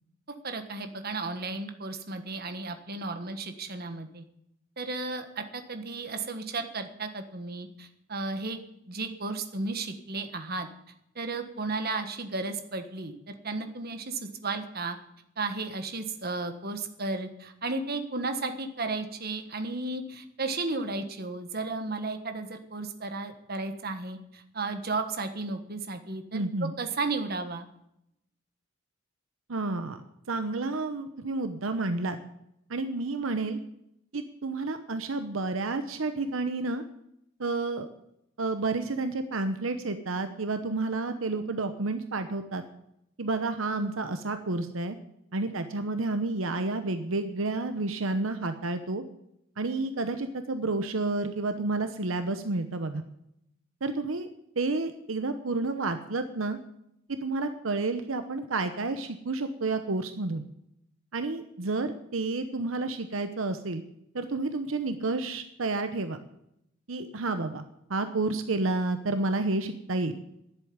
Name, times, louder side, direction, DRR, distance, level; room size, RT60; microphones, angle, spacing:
voice 1, 0.4-4.2 4.8-8.6 8.9-10.7 11.1-15.0 15.4-27.7, right 3 dB, 50° right, 7 dB, 1.4 m, -34 dB
voice 2, 26.3-26.7 29.5-30.0 30.3-32.2 32.7-33.6 34.1-36.8 37.4-37.9 38.4-42.6 43.2-45.0 45.3-49.0 49.6-53.0 53.8-54.3 54.6-56.6 57.1-60.4 61.1-63.8 64.1-66.2 66.9-67.6 67.9-70.2, right 3 dB, 80° right, 9 dB, 0.9 m, -30 dB
11.0 x 8.2 x 9.6 m, 0.79 s
head